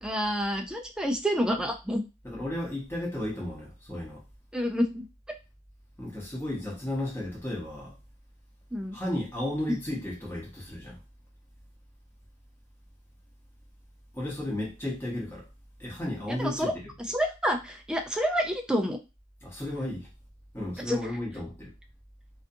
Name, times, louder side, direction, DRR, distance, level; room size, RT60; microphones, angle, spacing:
voice 1, 0.0-2.0 4.5-5.1 8.7-9.0 16.4-16.7 17.1-19.0 20.9-21.0, equal, 5° right, 4 dB, 0.3 m, -28 dB
voice 2, 2.2-4.2 6.0-7.9 8.9-11.0 14.1-15.4 15.8-16.9 19.4-20.1 20.5-21.7, left 1 dB, 10° left, -4 dB, 0.8 m, -34 dB
2.4 x 2.4 x 2.6 m, 0.28 s
head